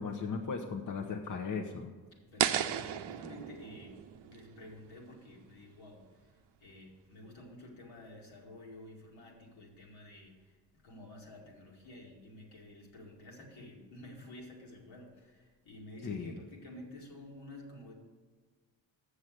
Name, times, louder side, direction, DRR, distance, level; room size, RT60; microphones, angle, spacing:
voice 1, 0.0-1.9 16.0-16.4, left 5 dB, 40° left, 4 dB, 0.9 m, -37 dB
voice 2, 2.1-17.9, left 1 dB, 80° left, -2 dB, 2.4 m, -51 dB
sound 1, 2.4-5.4, right 10 dB, 60° right, 0.6 m, -35 dB
7.1 x 6.5 x 7.8 m, 1.4 s
supercardioid pair, 55°, 46 cm